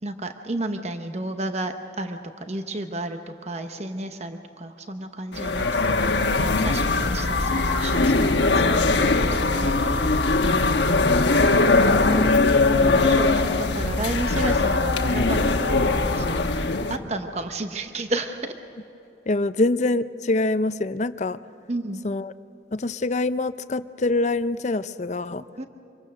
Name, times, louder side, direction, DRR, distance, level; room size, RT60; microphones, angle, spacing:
voice 1, 0.0-10.0 10.4-10.8 12.6-18.6 21.7-22.0 25.6-25.7, right 2 dB, 40° right, 6 dB, 0.9 m, -32 dB
sound 1, 5.3-17.0, left 3 dB, 85° left, 1.2 m, -21 dB
voice 2, 11.8-12.6 19.3-21.4 22.0-22.3 22.7-25.4, left 2 dB, 40° left, 13 dB, 0.5 m, -25 dB
26.5 x 22.5 x 6.6 m, 2.9 s
head